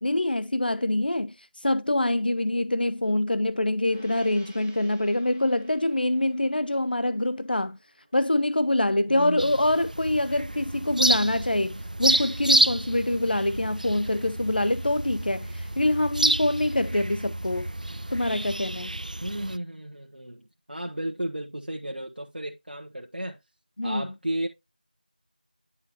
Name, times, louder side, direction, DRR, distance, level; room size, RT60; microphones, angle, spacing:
voice 1, 0.0-7.8 8.1-17.7 18.1-18.9 23.8-24.1, left 1 dB, 80° left, 0.4 m, -25 dB
Gong, 3.8-13.5, equal, 15° left, 0.6 m, -55 dB
voice 2, 9.1-9.6 19.2-23.4 23.8-24.5, right 1 dB, 80° right, 1.0 m, -34 dB
sound 1, 9.4-19.6, right 1 dB, 60° right, 0.3 m, -29 dB
9.8 x 5.0 x 2.8 m
figure-of-eight pair, 180°, 5 cm